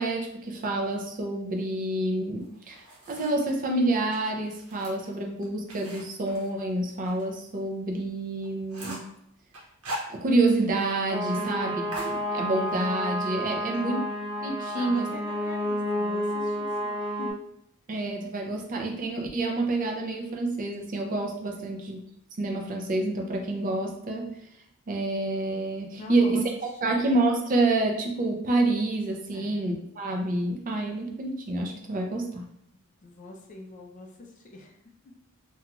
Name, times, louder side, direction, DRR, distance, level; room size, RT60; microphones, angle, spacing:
voice 1, 0.0-9.0 10.1-14.0 14.4-15.1 17.9-22.0 22.4-24.3 24.9-26.4 26.8-32.5, right 2 dB, 40° right, 2 dB, 0.4 m, -28 dB
sound 1, 2.4-3.5 4.0-7.2 7.6-7.7 8.1-8.2 8.4-9.1 9.5-10.6 10.9-11.0 11.3-11.5 11.9-12.8, right 1 dB, 80° right, 0.8 m, -41 dB
sound 2, 11.1-17.3, equal, 15° right, 1.0 m, -30 dB
voice 2, 11.4-12.0 13.7-14.0 14.7-17.4 21.8-21.9 26.0-27.0 29.3-29.7 33.0-34.8 35.0-35.1, left 2 dB, 35° left, 1 dB, 0.4 m, -43 dB
2.9 x 2.3 x 2.4 m, 0.73 s
head